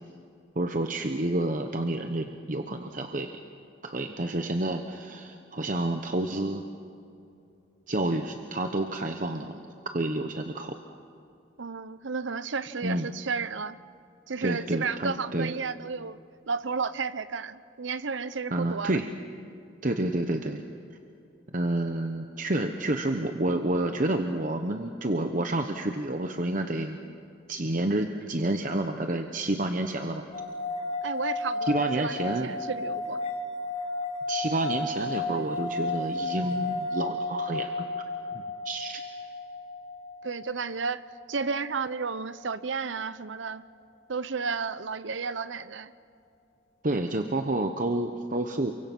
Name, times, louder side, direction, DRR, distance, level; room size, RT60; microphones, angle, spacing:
voice 1, 0.5-3.3 3.8-6.6 7.9-10.8 12.8-13.1 14.4-15.5 18.5-19.1 19.8-20.6 21.5-27.0 27.5-30.2 31.7-32.5 34.3-37.9 38.6-39.0 46.8-48.7, right 1 dB, 45° right, 5 dB, 1.0 m, -29 dB
voice 2, 11.6-13.8 14.3-16.2 16.5-19.0 31.0-33.2 40.2-41.0 41.3-43.6 44.1-45.9, right 5 dB, 80° right, 15 dB, 0.8 m, -32 dB
sound 1, 30.3-41.7, left 2 dB, 35° left, 2.0 m, -33 dB
29.0 x 24.0 x 6.1 m, 2.5 s
head